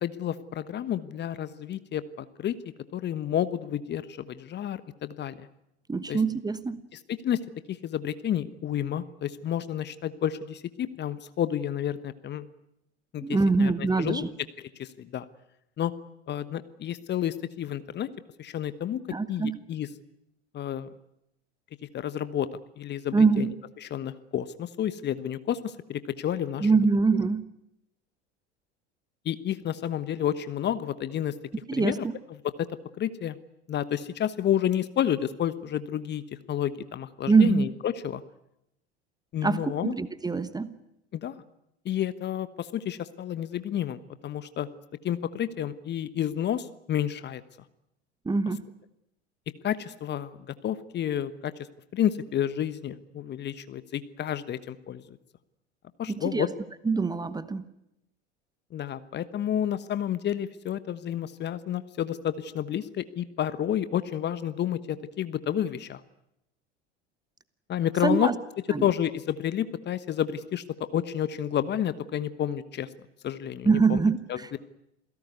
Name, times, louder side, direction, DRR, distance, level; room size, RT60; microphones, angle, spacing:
voice 1, 0.0-2.6 2.9-5.5 6.1-6.2 7.2-7.4 7.7-12.5 13.1-14.2 14.6-15.3 15.8-15.9 16.3-18.1 18.4-19.0 19.3-19.9 20.5-20.9 21.9-22.5 22.8-23.5 23.8-26.7 29.2-31.3 31.7-31.9 32.6-32.7 33.0-33.4 33.7-36.2 36.5-38.2 39.3-39.9 41.1-41.4 41.8-44.7 45.0-47.4 49.6-51.5 51.9-55.2 56.0-56.5 58.7-66.0 67.7-68.3 68.8-72.9 73.2-74.0 74.3-74.4, left 10 dB, 30° left, 14 dB, 1.3 m, -30 dB
voice 2, 5.9-6.8 13.2-14.3 19.1-19.6 23.1-23.5 26.6-27.5 31.7-32.1 37.3-37.7 39.4-40.8 48.2-48.6 56.1-56.5 56.8-57.6 68.0-68.3 68.7-68.9 73.6-74.6, right 4 dB, 10° right, 14 dB, 1.2 m, -24 dB
28.0 x 17.0 x 9.6 m, 0.83 s
figure-of-eight pair, 80°, 34 cm